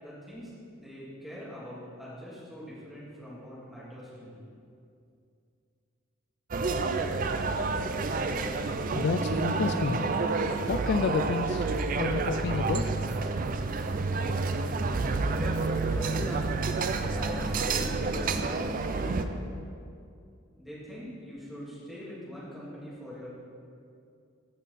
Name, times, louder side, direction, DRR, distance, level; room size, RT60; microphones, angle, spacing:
voice 1, 0.0-4.4 15.3-16.7 16.9-19.4 20.6-23.3, equal, ahead, -10 dB, 2.6 m, -42 dB
sound 1, 6.5-19.3, right 3 dB, 40° right, 0.4 m, -29 dB
voice 2, 8.9-10.1 10.7-11.7 12.0-12.8, left 5 dB, 50° left, 8 dB, 0.3 m, -29 dB
15.0 x 5.5 x 4.1 m, 2.5 s
head